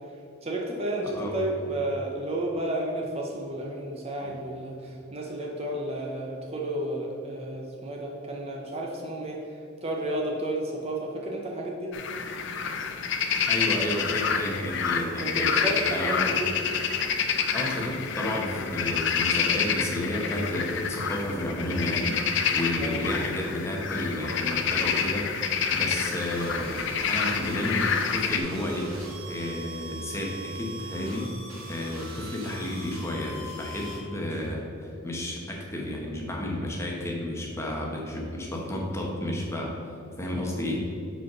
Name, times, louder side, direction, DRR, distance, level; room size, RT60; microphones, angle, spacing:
voice 1, 0.4-11.9 15.2-16.5 22.8-23.0, right 1 dB, 30° right, -1 dB, 0.6 m, -32 dB
voice 2, 1.0-1.4 4.2-4.3 13.5-16.3 17.5-25.3 25.7-28.9 29.3-31.3 31.7-39.8 40.2-40.8, left 1 dB, 15° left, -1 dB, 0.9 m, -31 dB
sound 1, 11.9-28.4, left 6 dB, 55° left, 0.5 m, -28 dB
sound 2, 26.1-34.0, right 1 dB, 80° right, 1.6 m, -42 dB
4.9 x 4.6 x 6.0 m, 2.6 s
head